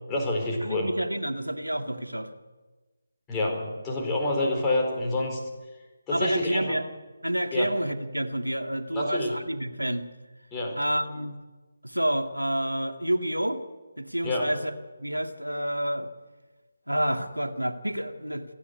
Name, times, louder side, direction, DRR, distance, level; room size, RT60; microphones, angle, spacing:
voice 1, 0.1-0.9 3.3-5.4 6.1-6.7 7.5-7.7 8.9-9.3 10.5-10.8 14.2-14.5, left 2 dB, 15° left, -2 dB, 4.4 m, -27 dB
voice 2, 0.6-2.3 6.1-6.8 7.2-10.1 10.8-11.4 11.8-13.6 14.0-14.7 15.0-16.1 16.9-18.5, right 1 dB, 90° right, 6 dB, 2.1 m, -29 dB
28.0 x 10.5 x 9.7 m, 1.2 s
figure-of-eight pair, 150°, 0 cm